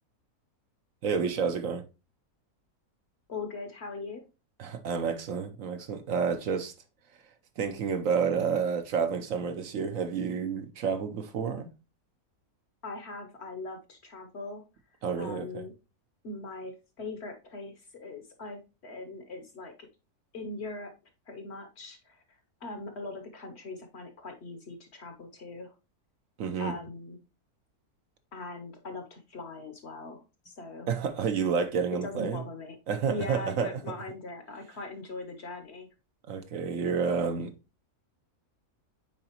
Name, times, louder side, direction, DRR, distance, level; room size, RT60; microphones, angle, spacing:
voice 1, 1.0-1.8 4.6-6.7 7.6-11.7 15.0-15.6 26.4-26.7 30.9-32.4 32.9-33.7 36.3-37.5, right 6 dB, 65° right, 1.0 m, -29 dB
voice 2, 3.3-4.2 12.8-14.6 15.2-15.7 16.2-19.9 20.3-20.9 21.3-25.7 26.6-27.2 28.3-30.9 31.9-32.8 33.1-35.9, left 3 dB, 50° left, 1.0 m, -40 dB
8.7 x 3.9 x 2.9 m
omnidirectional pair, 1.6 m